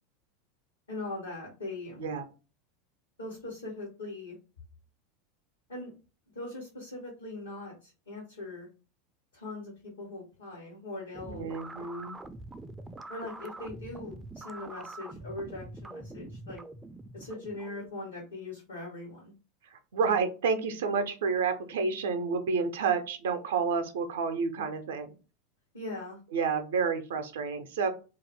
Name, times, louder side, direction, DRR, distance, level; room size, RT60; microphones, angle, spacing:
voice 1, 0.9-2.0 3.2-4.4 5.7-5.9 6.3-8.7 9.3-11.5 13.1-16.6 17.1-19.3 25.7-26.2, left 2 dB, 85° left, -5 dB, 1.0 m, -41 dB
sound 1, 11.1-17.9, right 2 dB, 10° right, 0.3 m, -45 dB
voice 2, 11.3-12.2 19.7-25.1 26.3-27.9, right 5 dB, 70° right, 7 dB, 0.5 m, -30 dB
2.4 x 2.1 x 3.3 m, 0.33 s
figure-of-eight pair, 85°, 0 cm